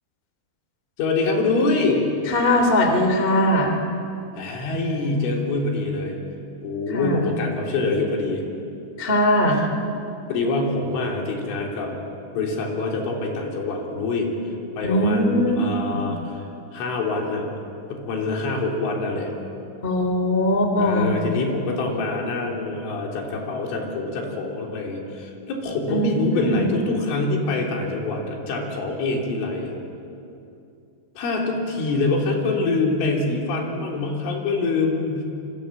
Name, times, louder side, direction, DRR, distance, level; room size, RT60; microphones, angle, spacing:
voice 1, 1.0-2.1 4.4-6.2 6.6-8.4 10.3-11.9 12.3-14.3 14.8-16.5 16.7-17.5 17.9-19.3 20.8-29.7 31.2-35.2, left 3 dB, 80° left, 0 dB, 6.0 m, -25 dB
voice 2, 2.3-3.8 6.9-7.2 9.0-9.6 14.8-15.6 15.9-16.0 19.8-21.1 25.9-26.7, left 1 dB, 15° left, 4 dB, 2.1 m, -20 dB
26.0 x 25.0 x 8.7 m, 2.7 s
omnidirectional pair, 5.5 m